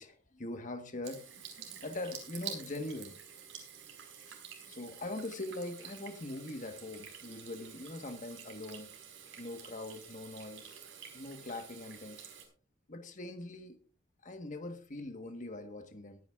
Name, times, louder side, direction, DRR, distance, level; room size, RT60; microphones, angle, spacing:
voice 1, 0.0-1.4 1.8-3.2 4.3-4.4 4.7-8.9 9.4-10.8 11.1-12.3 12.9-13.8 14.2-16.2, left 2 dB, 40° left, 6 dB, 1.3 m, -42 dB
Water tap faucet / Sink (filling or washing), 1.0-12.5, right 7 dB, 75° right, 4.9 m, -49 dB
22.0 x 10.0 x 2.4 m, 0.38 s
head